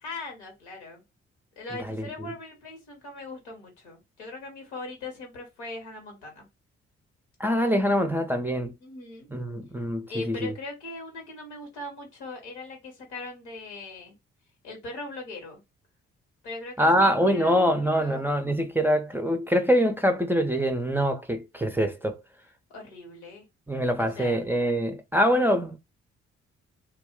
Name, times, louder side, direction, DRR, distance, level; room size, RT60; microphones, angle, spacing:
voice 1, 0.0-1.0 1.6-6.5 8.8-9.3 10.1-14.1 14.6-15.6 16.4-17.6 18.0-18.3 22.7-23.4 24.0-24.4, left 2 dB, 80° left, 1.2 m, -40 dB
voice 2, 1.9-2.3 7.4-8.7 9.3-10.5 16.8-22.2 23.7-25.8, equal, 5° right, 0.5 m, -24 dB
2.3 x 2.2 x 3.6 m
figure-of-eight pair, 40°, 34 cm